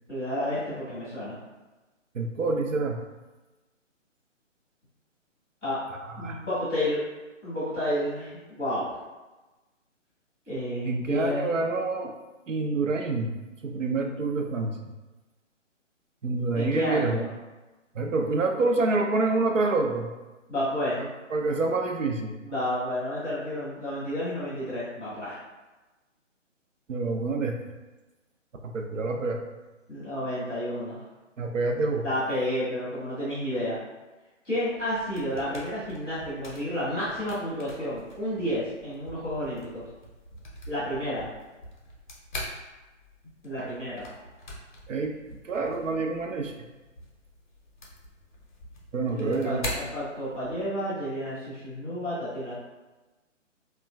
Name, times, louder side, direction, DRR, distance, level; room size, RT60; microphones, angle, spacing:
voice 1, 0.1-1.4 5.6-5.8 6.2-7.0 7.4-8.9 10.5-11.5 16.5-17.3 20.5-21.0 22.4-25.4 29.9-31.0 32.0-33.8 34.4-39.8 40.7-41.3 43.4-44.1 45.6-45.7 49.1-52.5, equal, ahead, -22 dB, 0.5 m, -31 dB
voice 2, 2.1-3.0 6.1-6.4 10.8-12.1 12.5-13.4 13.6-14.9 16.2-17.2 17.9-20.1 21.0-22.4 26.9-27.6 28.6-29.4 31.4-32.1 44.9-46.5 48.9-49.6, right 3 dB, 80° right, 2 dB, 0.6 m, -27 dB
sound 1, 34.7-50.7, left 1 dB, 40° left, 0.6 m, -43 dB
3.0 x 2.2 x 2.2 m, 1.1 s
figure-of-eight pair, 140°, 38 cm